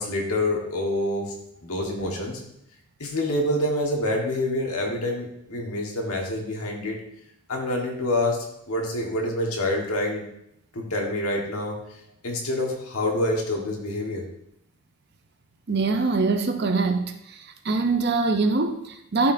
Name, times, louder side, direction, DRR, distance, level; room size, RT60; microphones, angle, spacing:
voice 1, 0.0-1.3 1.6-2.4 3.0-7.0 7.5-10.2 10.7-11.8 12.2-14.2, left 1 dB, 85° left, 0 dB, 1.5 m, -27 dB
voice 2, 15.7-17.4 17.6-19.3, right 3 dB, 50° right, 6 dB, 0.6 m, -23 dB
11.5 x 4.5 x 2.7 m, 0.77 s
head